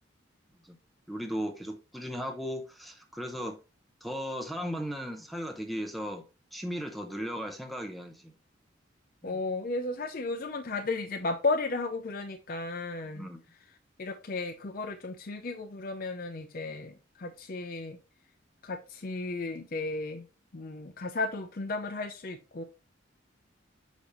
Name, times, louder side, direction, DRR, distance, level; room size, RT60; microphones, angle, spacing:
voice 1, 1.1-3.6 4.0-6.2 6.5-8.3 9.2-9.4 13.1-13.4, equal, ahead, 0.7 m, -36 dB
voice 2, 9.2-13.3 14.0-18.0 18.6-20.2 20.5-22.6, left 3 dB, 45° left, 0.6 m, -34 dB
7.0 x 5.1 x 3.0 m
head